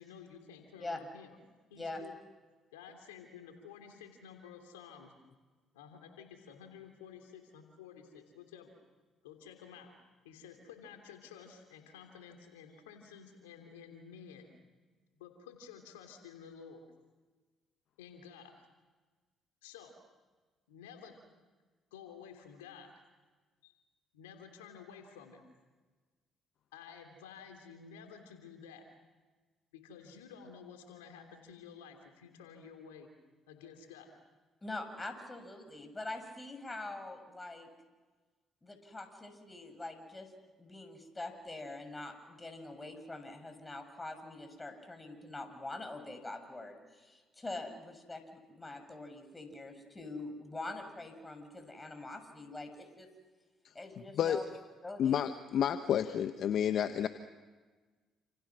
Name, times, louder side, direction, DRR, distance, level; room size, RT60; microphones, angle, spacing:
voice 1, 0.0-1.4 1.7-2.2 2.7-5.1 5.7-8.7 9.2-9.9 10.2-14.5 15.1-16.8 18.0-18.5 19.6-19.9 20.7-21.2 21.9-23.0 23.6-23.8 24.1-25.5 26.7-28.8 29.7-33.1 33.5-34.1, left 7 dB, 90° left, 5 dB, 3.1 m, -52 dB
voice 2, 34.6-37.7 38.6-40.3 40.6-53.1 53.7-54.4 54.8-55.2, left 2 dB, 20° left, 6 dB, 7.2 m, -44 dB
voice 3, 55.0-57.1, left 9 dB, 65° left, 9 dB, 1.1 m, -30 dB
29.5 x 28.0 x 6.2 m, 1.3 s
hypercardioid pair, 55°, 0 cm